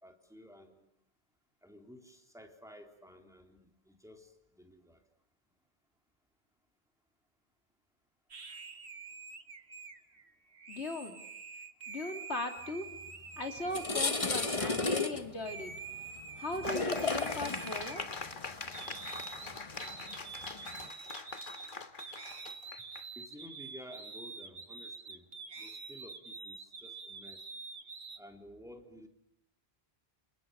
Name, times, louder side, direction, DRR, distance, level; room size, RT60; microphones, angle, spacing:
voice 1, 0.0-0.9 1.6-4.3 4.6-5.0 19.5-19.6 23.2-25.2 25.6-27.4 28.2-29.1, equal, 5° right, 4 dB, 3.6 m, -53 dB
sound 1, 8.3-15.1 15.5-18.4 18.7-28.2, right 5 dB, 75° right, 2.1 m, -47 dB
voice 2, 10.7-11.2 11.9-12.9 13.4-15.7 16.4-18.0, left 2 dB, 85° left, 5 dB, 3.3 m, -38 dB
sound 2, 13.1-13.2 13.6-20.9, left 3 dB, 30° left, 1.3 m, -35 dB
sound 3, 16.6-23.1, left 4 dB, 50° left, 1.7 m, -42 dB
30.0 x 28.0 x 7.0 m, 0.78 s
omnidirectional pair, 1.1 m